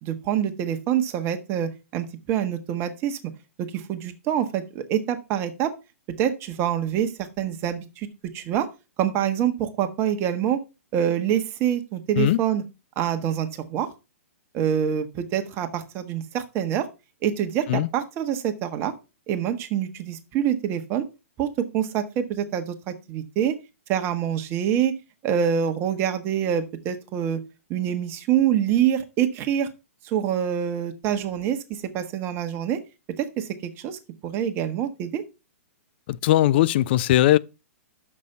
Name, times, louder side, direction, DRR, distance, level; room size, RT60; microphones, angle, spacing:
voice 1, 0.0-3.2 3.6-5.7 6.2-8.1 8.3-8.7 9.0-10.6 10.9-12.6 13.0-13.9 14.5-16.9 17.2-18.9 19.3-21.0 21.4-23.5 23.9-24.9 25.2-27.4 27.7-29.7 30.0-32.8 33.2-35.2, right 9 dB, 30° right, 1.2 m, -26 dB
voice 2, 36.1-37.4, left 14 dB, 45° left, 0.4 m, -19 dB
6.7 x 5.3 x 5.7 m
hypercardioid pair, 120°, 8 cm